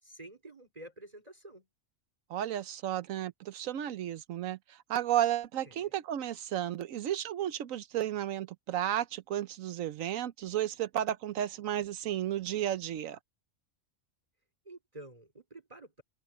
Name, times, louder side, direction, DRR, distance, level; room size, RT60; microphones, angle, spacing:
voice 1, 0.0-1.7 5.7-5.9 14.7-16.0, right 1 dB, 30° right, 3.8 m, -50 dB
voice 2, 2.3-13.2, right 11 dB, 85° right, 1.2 m, -33 dB
omnidirectional pair, 1.4 m